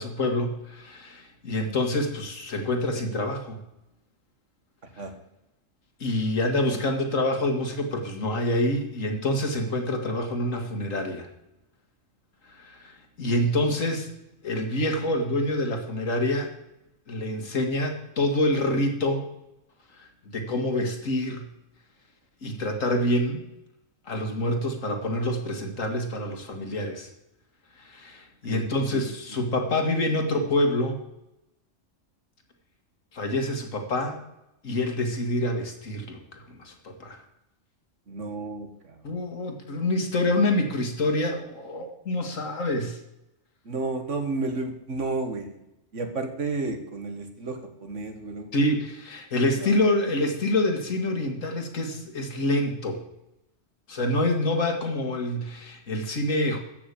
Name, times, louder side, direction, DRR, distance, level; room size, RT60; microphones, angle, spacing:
voice 1, 0.0-3.6 6.0-11.3 12.5-14.1 14.4-16.5 17.1-19.2 20.3-21.4 22.4-23.4 24.1-27.1 27.8-31.0 33.1-34.2 34.6-36.2 36.5-37.2 39.0-43.0 48.5-53.0 53.9-56.6, left 1 dB, 80° left, 5 dB, 2.4 m, -26 dB
voice 2, 38.1-39.0 43.7-45.6 45.9-48.5 49.6-49.8, right 3 dB, 70° right, 7 dB, 2.0 m, -32 dB
14.0 x 6.2 x 8.4 m, 0.88 s
omnidirectional pair, 1.3 m